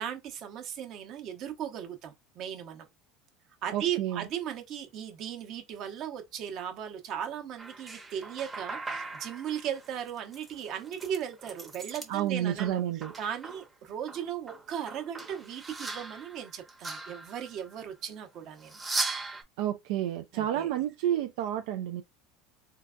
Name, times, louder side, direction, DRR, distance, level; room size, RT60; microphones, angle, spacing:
voice 1, 0.0-2.9 3.6-18.8 20.3-20.7, right 9 dB, 50° right, 0.9 m, -37 dB
voice 2, 3.7-4.3 12.1-13.1 19.6-22.0, right 11 dB, 75° right, 0.4 m, -30 dB
sound 1, 7.6-12.1 12.4-13.7 14.1-17.7 18.6-19.4, right 3 dB, 15° right, 0.8 m, -39 dB
3.8 x 2.2 x 2.5 m
supercardioid pair, 125°, 0 cm